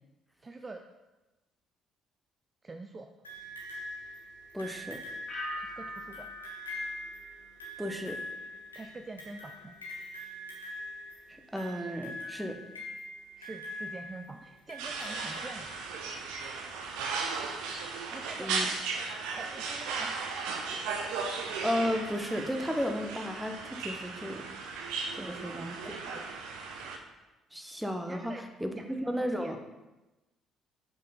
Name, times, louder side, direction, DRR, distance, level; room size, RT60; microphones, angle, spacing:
voice 1, 0.4-0.8 2.6-3.1 5.6-6.3 8.7-9.8 13.4-15.9 18.1-18.6 19.3-20.2 25.2-25.9 28.1-29.6, right 3 dB, 30° right, 5 dB, 0.4 m, -46 dB
sound 1, 3.2-16.1 17.0-17.1, left 1 dB, 85° left, 0.8 m, -43 dB
voice 2, 4.5-5.0 7.8-8.2 11.3-12.6 18.4-18.7 21.6-24.4 25.2-26.1 27.5-29.6, equal, 5° right, 4 dB, 0.9 m, -34 dB
sound 2, 5.3-8.1 8.4-8.9, equal, 35° left, 2.0 m, -43 dB
sound 3, 14.8-27.0, right 4 dB, 65° right, 0.7 m, -36 dB
5.2 x 4.5 x 4.9 m, 1.1 s
figure-of-eight pair, 45°, 0 cm